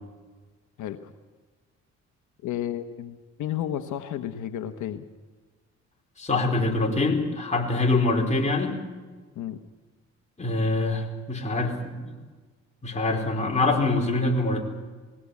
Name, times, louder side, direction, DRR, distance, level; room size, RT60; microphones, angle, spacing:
voice 1, 0.8-1.1 2.4-5.1 9.4-9.6, left 11 dB, 80° left, 7 dB, 1.1 m, -32 dB
voice 2, 6.2-8.8 10.4-12.1 12.8-14.6, left 2 dB, 25° left, 1 dB, 4.6 m, -24 dB
21.0 x 17.0 x 8.4 m, 1.4 s
cardioid pair, 90°, 30 cm